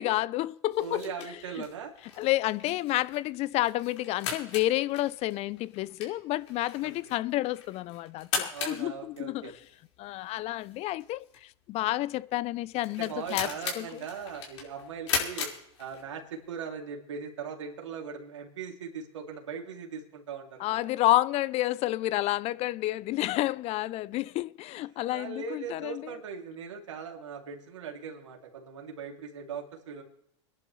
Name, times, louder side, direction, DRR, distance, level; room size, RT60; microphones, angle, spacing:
voice 1, 0.0-1.1 1.6-1.7 2.2-9.5 10.0-13.5 13.8-14.0 20.6-26.1, left 16 dB, 45° left, 0.6 m, -30 dB
sound 1, 0.7-16.4, left 6 dB, 80° left, 5.0 m, -39 dB
voice 2, 0.8-1.9 6.8-7.2 8.5-9.5 13.0-15.5 15.8-20.9 25.1-30.0, right 6 dB, 90° right, 3.0 m, -40 dB
24.5 x 11.0 x 3.3 m
hypercardioid pair, 105°, 15 cm